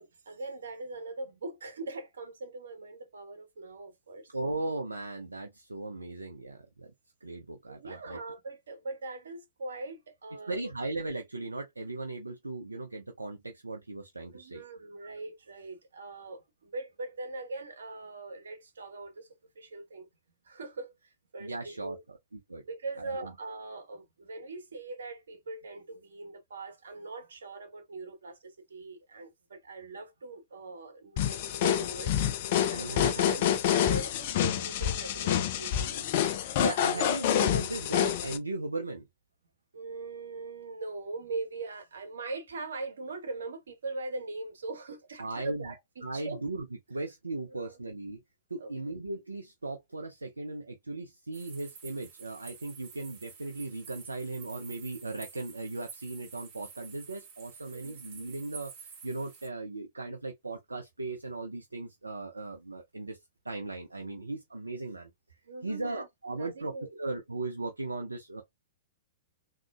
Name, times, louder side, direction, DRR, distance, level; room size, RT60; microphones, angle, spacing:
voice 1, 0.0-4.3 7.7-10.6 14.3-19.3 19.5-20.1 20.4-22.0 22.6-32.2 32.7-36.1 36.8-37.1 39.7-45.8 46.1-46.4 47.5-47.8 48.6-48.7 57.7-58.0 65.4-66.1 66.4-66.9, right 3 dB, 70° right, 1.0 m, -41 dB
voice 2, 4.3-6.9 7.2-8.2 10.5-14.6 15.0-15.1 21.4-22.0 22.5-22.6 23.0-23.3 32.7-33.5 36.4-39.0 45.2-45.7 46.0-48.2 48.5-63.2 63.4-65.1 65.6-66.7 67.0-68.4, right 2 dB, 85° right, 0.5 m, -37 dB
sound 1, 31.2-38.4, left 10 dB, 50° left, 0.5 m, -27 dB
sound 2, 51.3-59.5, right 6 dB, 40° right, 2.1 m, -49 dB
3.6 x 2.8 x 2.3 m
figure-of-eight pair, 110°, 0 cm